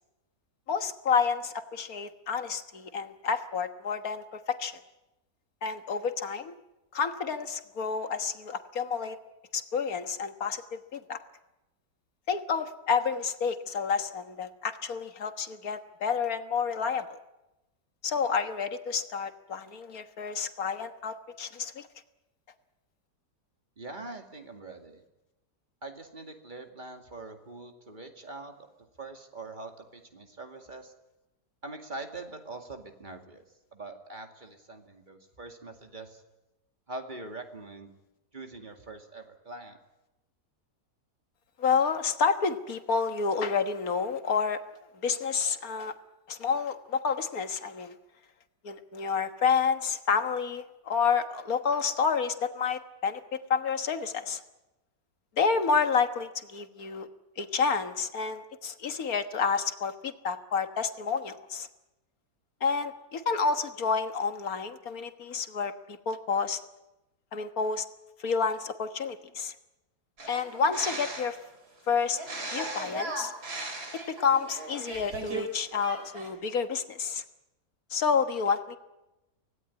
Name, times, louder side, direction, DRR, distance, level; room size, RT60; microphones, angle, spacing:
voice 1, 0.7-4.7 5.6-6.5 6.9-9.2 9.5-11.2 12.3-17.2 18.0-21.9 41.6-44.6 45.0-45.9 46.3-48.0 48.6-54.4 55.4-57.1 57.4-61.7 62.6-66.6 67.3-67.9 68.2-69.5 70.3-71.4 71.9-72.2 72.5-73.3 74.1-77.2 77.9-78.8, left 5 dB, 60° left, 8 dB, 1.8 m, -29 dB
voice 2, 23.8-25.0 25.8-30.9 31.6-33.4 33.7-36.2 36.9-37.9 38.3-39.8, right 2 dB, 30° right, 4 dB, 2.3 m, -43 dB
sound 1, 70.2-71.4 72.1-75.4 75.7-76.3, right 2 dB, 65° right, 4.4 m, -37 dB
25.0 x 17.5 x 9.6 m, 1.0 s
omnidirectional pair, 1.8 m